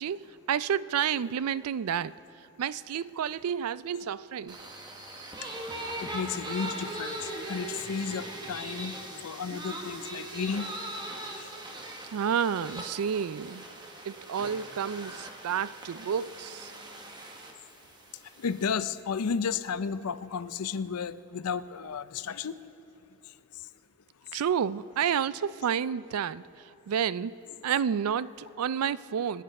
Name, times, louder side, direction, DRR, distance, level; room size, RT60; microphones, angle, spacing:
voice 1, 0.0-2.1 2.6-4.6 12.1-13.7 14.1-16.7 24.3-26.4 26.9-27.3 27.6-29.4, right 8 dB, 90° right, 18 dB, 0.4 m, -30 dB
sound 1, 4.5-18.7, right 1 dB, 20° right, 1.0 m, -40 dB
voice 2, 6.0-8.9 9.2-10.7 11.4-11.5 18.4-22.5, left 6 dB, 90° left, 14 dB, 0.5 m, -33 dB
26.0 x 9.3 x 5.3 m, 3.0 s
head